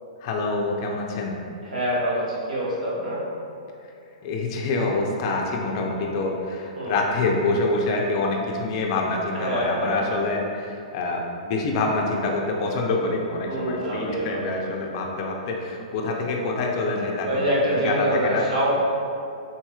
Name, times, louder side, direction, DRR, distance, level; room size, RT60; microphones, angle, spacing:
voice 1, 0.2-1.3 4.2-17.3 17.8-18.5, left 3 dB, 45° left, 0 dB, 0.5 m, -26 dB
voice 2, 1.6-3.2 6.8-7.0 9.3-10.0 13.5-14.6 17.2-18.7, right 1 dB, 85° right, -8 dB, 1.3 m, -25 dB
3.8 x 2.9 x 2.3 m, 2.5 s
hypercardioid pair, 140°, 4 cm